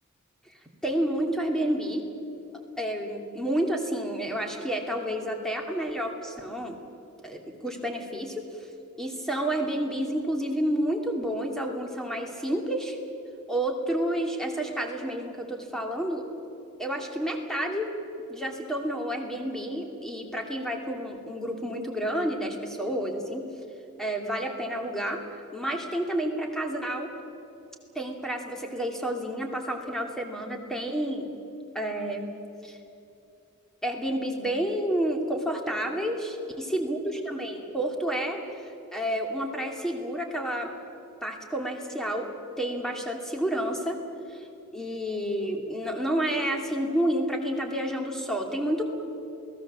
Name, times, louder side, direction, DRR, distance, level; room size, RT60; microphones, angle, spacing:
voice 1, 0.8-2.0 2.8-6.8 7.2-8.4 9.0-13.0 13.5-16.3 16.8-17.9 18.3-23.5 24.0-25.2 25.5-27.1 27.9-31.3 31.7-32.4 32.6-32.8 33.8-38.4 38.9-40.7 41.2-42.3 42.6-44.0 44.3-44.4 44.7-48.8, right 1 dB, ahead, 2 dB, 2.5 m, -30 dB
28.0 x 18.5 x 7.4 m, 2.8 s
head